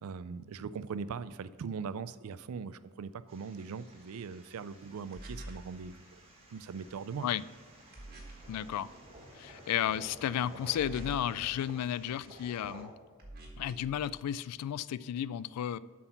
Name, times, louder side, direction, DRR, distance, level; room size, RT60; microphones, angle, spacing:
voice 1, 0.0-6.2 6.5-7.3, right 5 dB, 70° right, 16 dB, 0.4 m, -40 dB
sound 1, 3.3-12.8, right 1 dB, 25° right, 1.8 m, -54 dB
sound 2, 4.6-11.9, right 1 dB, 20° left, 1.6 m, -62 dB
sound 3, 5.1-5.7 7.9-8.5 10.7-11.4 13.2-13.9, right 1 dB, 45° right, 1.6 m, -46 dB
voice 2, 8.5-8.9 9.3-12.9 13.6-15.8, left 10 dB, 90° left, 19 dB, 0.3 m, -33 dB
7.7 x 6.0 x 5.9 m, 1.4 s
head